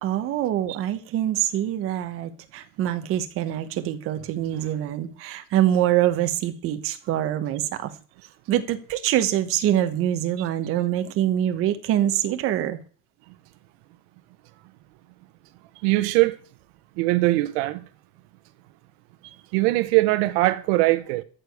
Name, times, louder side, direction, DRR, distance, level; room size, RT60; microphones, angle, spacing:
voice 1, 0.0-7.9 8.5-12.8, right 12 dB, 40° right, 1.2 m, -24 dB
voice 2, 15.8-16.3 17.0-17.8 19.5-21.2, right 19 dB, 85° right, 0.9 m, -21 dB
13.5 x 4.9 x 8.0 m
cardioid pair, 170°, 33 cm